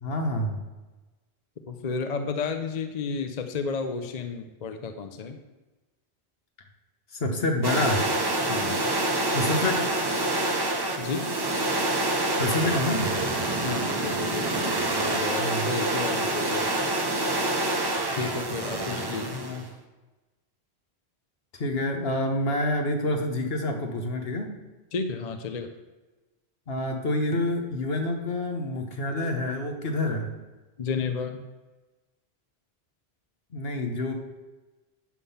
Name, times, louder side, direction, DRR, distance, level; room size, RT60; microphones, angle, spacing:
voice 1, 0.0-0.6 7.1-8.0 9.3-10.1 12.4-13.1 15.4-15.7 19.3-19.6 21.5-24.5 26.7-30.3 33.5-34.1, left 1 dB, 70° left, 3 dB, 1.4 m, -27 dB
voice 2, 1.7-5.4 8.5-8.9 11.0-11.3 13.7-14.4 14.9-16.8 18.1-19.4 24.9-25.7 30.8-31.4, left 5 dB, 45° left, 7 dB, 0.7 m, -32 dB
sound 1, 7.6-19.7, right 2 dB, 25° right, 0.8 m, -27 dB
11.0 x 3.7 x 7.0 m, 1.2 s
omnidirectional pair, 1.1 m